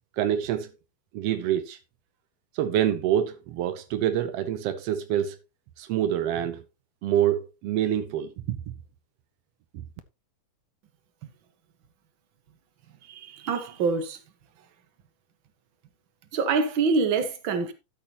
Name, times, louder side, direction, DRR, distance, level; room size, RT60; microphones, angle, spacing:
voice 1, 0.2-0.7 1.1-1.8 2.5-5.4 5.8-6.6 7.0-8.6, right 11 dB, 85° right, 1.4 m, -26 dB
voice 2, 13.1-14.2 16.3-17.7, right 4 dB, 50° right, 1.6 m, -25 dB
12.5 x 8.6 x 2.9 m
omnidirectional pair, 3.7 m